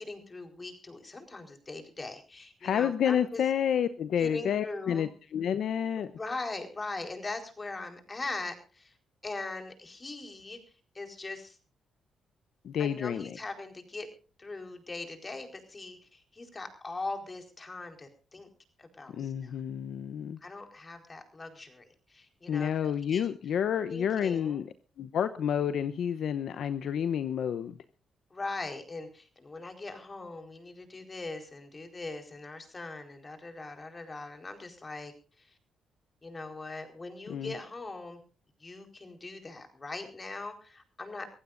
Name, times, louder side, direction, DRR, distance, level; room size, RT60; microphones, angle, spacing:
voice 1, 0.0-3.4 4.2-5.1 6.0-8.9 9.2-10.6 10.9-11.6 12.8-14.1 14.4-18.5 18.8-19.5 20.4-23.3 23.9-24.6 28.3-35.1 35.4-35.6 36.2-38.2 38.6-41.3, left 3 dB, 30° left, 6 dB, 4.4 m, -41 dB
voice 2, 2.6-6.1 12.6-13.4 19.1-20.4 22.5-27.8 37.3-37.5, left 8 dB, 70° left, 11 dB, 0.8 m, -30 dB
25.0 x 15.5 x 2.6 m, 0.36 s
cardioid pair, 70°, 0 cm